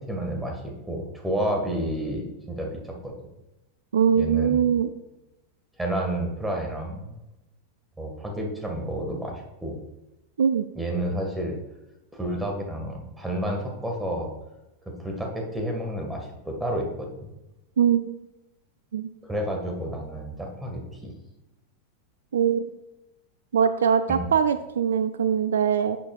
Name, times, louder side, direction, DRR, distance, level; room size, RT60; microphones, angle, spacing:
voice 1, 0.0-3.1 4.1-4.7 5.8-7.1 8.0-9.8 10.8-11.6 12.1-14.3 14.9-17.3 19.2-21.1 24.1-24.3, right 1 dB, 5° right, 1 dB, 1.9 m, -30 dB
voice 2, 3.9-4.9 10.4-10.7 17.8-18.1 18.9-19.1 22.3-22.7 23.5-26.0, right 7 dB, 65° right, 12 dB, 0.3 m, -22 dB
10.5 x 7.2 x 2.5 m, 0.97 s
figure-of-eight pair, 90°, 0 cm